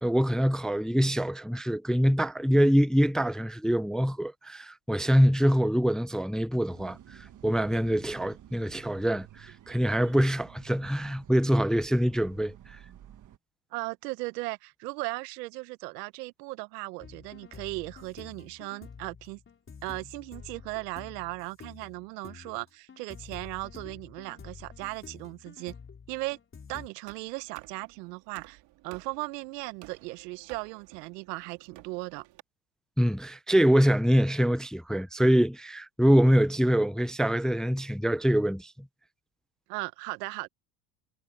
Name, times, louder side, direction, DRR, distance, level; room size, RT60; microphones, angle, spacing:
voice 1, 0.0-12.8 33.0-38.7, equal, ahead, 0.4 m, -24 dB
sound 1, 6.7-13.4, right 11 dB, 40° right, 1.5 m, -51 dB
voice 2, 13.7-19.4 19.8-25.7 26.1-26.4 26.7-32.2 39.7-40.5, right 24 dB, 90° right, 0.8 m, -37 dB
sound 2, 17.0-26.9, left 6 dB, 25° left, 4.0 m, -48 dB
sound 3, 27.0-32.4, right 17 dB, 65° right, 2.4 m, -54 dB
supercardioid pair, 105°, 47 cm